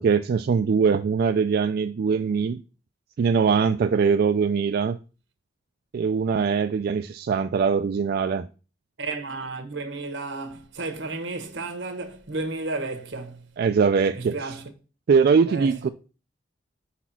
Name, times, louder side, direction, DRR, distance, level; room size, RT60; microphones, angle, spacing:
voice 1, 0.0-2.6 3.2-5.0 5.9-8.5 13.6-14.4 15.1-15.9, right 5 dB, 55° right, 0.3 m, -22 dB
voice 2, 9.0-13.5 14.1-14.7 15.5-15.9, right 3 dB, 85° right, 1.2 m, -33 dB
5.0 x 4.2 x 5.8 m
head